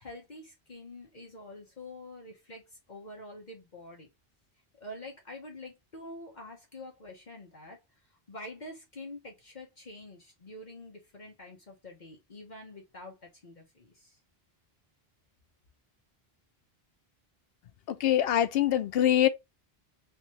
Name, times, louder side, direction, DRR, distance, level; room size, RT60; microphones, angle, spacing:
voice 1, 0.0-2.6 2.9-4.1 4.8-7.8 8.3-14.2, left 1 dB, 50° left, 1.1 m, -46 dB
voice 2, 17.9-19.3, left 12 dB, 75° left, 0.8 m, -24 dB
3.4 x 3.0 x 2.9 m
omnidirectional pair, 1.0 m